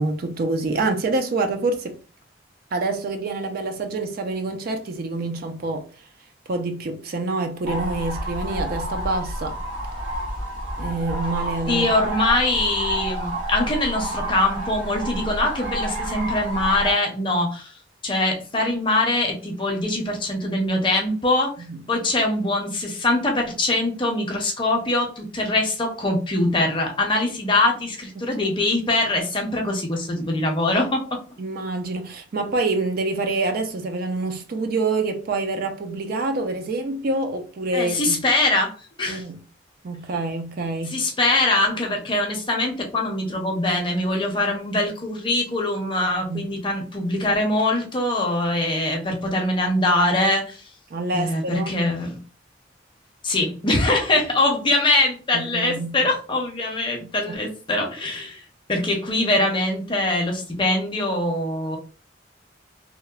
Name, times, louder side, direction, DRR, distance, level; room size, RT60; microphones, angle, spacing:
voice 1, 0.0-2.0 2.7-5.9 6.5-9.6 10.8-11.9 21.6-21.8 31.4-38.2 39.1-39.4 39.8-41.0 46.3-46.5 50.9-51.8 55.3-56.1 57.0-57.1, right 3 dB, 50° right, 0.4 m, -26 dB
sound 1, 7.6-16.9, right 1 dB, 85° right, 1.4 m, -29 dB
voice 2, 11.7-17.7 18.0-21.5 21.9-31.2 37.7-38.7 39.0-39.2 40.9-50.6 51.1-52.2 53.2-58.4 58.7-61.8, left 2 dB, 25° left, 0.6 m, -23 dB
2.8 x 2.0 x 2.3 m
head